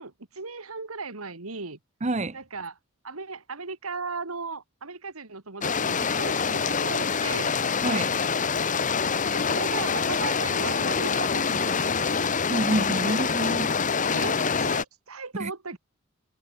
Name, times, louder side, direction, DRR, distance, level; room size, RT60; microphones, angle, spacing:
voice 1, 0.0-1.8 2.3-2.8 3.0-7.6 9.3-12.2 14.0-15.8, right 4 dB, 90° right, 2.3 m, -37 dB
voice 2, 2.0-2.4 7.8-8.2 12.5-13.7 15.4-15.5, right 2 dB, 35° right, 1.0 m, -27 dB
sound 1, 5.6-14.8, left 5 dB, 35° left, 1.0 m, -25 dB
head